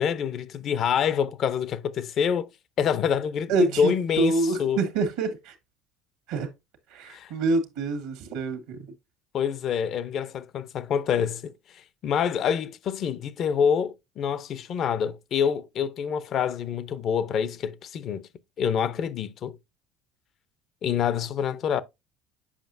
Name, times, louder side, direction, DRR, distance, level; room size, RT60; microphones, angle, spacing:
voice 1, 0.0-2.5 2.8-4.8 7.1-7.3 9.3-11.5 12.0-18.3 18.6-19.6 20.8-21.8, left 7 dB, 50° left, 0.6 m, -26 dB
voice 2, 3.5-5.5 6.3-6.5 6.9-8.8, right 3 dB, 80° right, 1.4 m, -26 dB
7.3 x 5.3 x 2.6 m
supercardioid pair, 85°, 0 cm